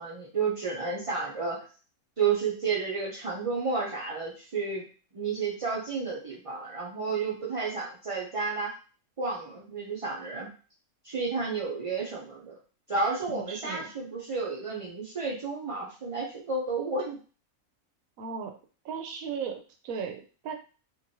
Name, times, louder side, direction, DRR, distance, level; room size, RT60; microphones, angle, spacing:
voice 1, 0.0-1.6 2.2-4.8 5.1-8.7 9.2-10.5 11.0-12.6 12.9-17.2, right 4 dB, 60° right, -4 dB, 0.3 m, -31 dB
voice 2, 13.3-13.9 18.2-18.5 18.8-20.5, right 6 dB, 80° right, 5 dB, 1.0 m, -36 dB
3.0 x 2.6 x 2.7 m, 0.37 s
omnidirectional pair, 1.5 m